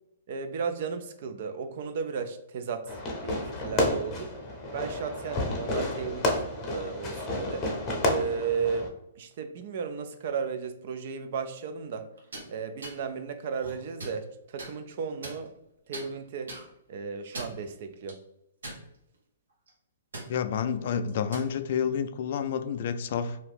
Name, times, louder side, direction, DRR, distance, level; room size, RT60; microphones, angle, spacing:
voice 1, 0.3-4.3 4.7-6.3 6.6-7.7 8.1-12.1 12.5-15.5 15.9-16.5 16.9-18.2, right 6 dB, 55° right, 8 dB, 0.4 m, -34 dB
Fireworks, 2.9-8.9, left 1 dB, 25° left, 0.7 m, -30 dB
sound 1, 12.2-12.5 12.8-13.0 13.6-14.2 14.6-14.7 15.2-15.7 15.9-16.1 16.5-16.6 17.2-17.6 18.1-18.2 18.6-19.2 19.5-19.7 20.1-20.3 21.1-21.5, right 2 dB, 80° right, 1.1 m, -40 dB
voice 2, 20.3-23.4, left 7 dB, 55° left, 9 dB, 0.3 m, -29 dB
2.7 x 2.4 x 3.5 m, 0.84 s
hypercardioid pair, 135°, 0 cm